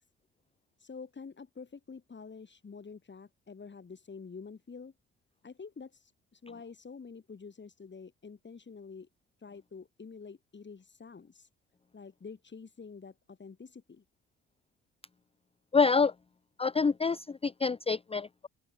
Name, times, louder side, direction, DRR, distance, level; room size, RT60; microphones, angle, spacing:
voice 1, 0.8-4.9 5.4-9.1 9.4-11.5 11.9-14.0, left 5 dB, 35° left, 5.4 m, -48 dB
voice 2, 15.7-16.1 16.6-18.5, left 5 dB, 20° left, 0.6 m, -27 dB
open air
cardioid pair, 85°, 32 cm